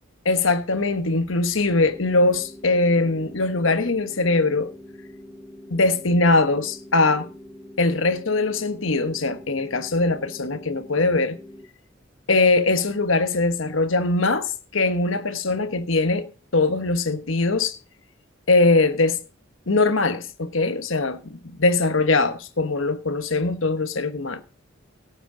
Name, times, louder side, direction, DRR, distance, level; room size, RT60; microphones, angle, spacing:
voice 1, 0.2-4.7 5.7-7.3 7.8-11.4 12.3-17.8 18.5-19.2 19.7-24.4, left 3 dB, 80° left, 1.2 m, -21 dB
sound 1, 1.6-11.6, left 1 dB, 10° left, 7.4 m, -44 dB
17.5 x 8.1 x 3.8 m
head